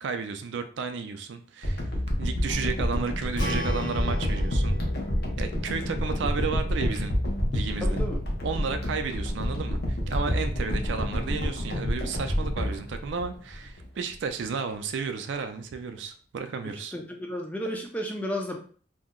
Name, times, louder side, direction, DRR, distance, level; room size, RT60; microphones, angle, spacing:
voice 1, 0.0-1.9 2.2-4.8 5.4-7.1 7.5-8.0 8.4-16.9, right 5 dB, 65° right, 8 dB, 0.3 m, -33 dB
sound 1, 1.6-13.9 14.4-14.5, equal, 55° left, 0.7 m, -28 dB
Strum, 3.4-7.6, left 1 dB, 80° left, 1.3 m, -38 dB
voice 2, 7.8-8.2 16.6-18.6, equal, 5° left, 1 dB, 0.4 m, -33 dB
2.7 x 2.0 x 3.6 m, 0.43 s
head